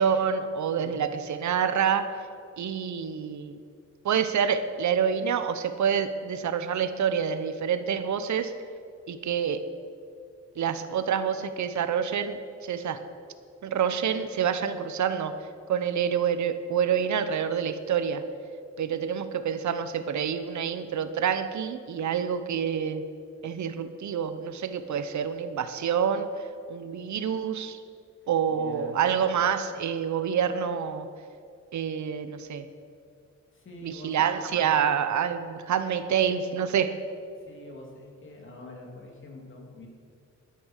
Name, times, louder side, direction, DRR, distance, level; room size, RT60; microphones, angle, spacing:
voice 1, 0.0-2.1 2.6-3.6 4.0-8.5 9.1-9.6 10.6-13.0 13.6-15.3 15.7-18.2 18.8-23.0 23.4-26.3 26.7-27.8 28.3-31.1 31.7-32.7 33.8-36.9, right 7 dB, 75° right, 11 dB, 0.9 m, -27 dB
voice 2, 28.5-29.0 33.5-34.6 37.4-39.9, left 1 dB, 45° left, 0 dB, 3.0 m, -45 dB
12.5 x 10.0 x 6.5 m, 2.3 s
cardioid pair, 110°, 29 cm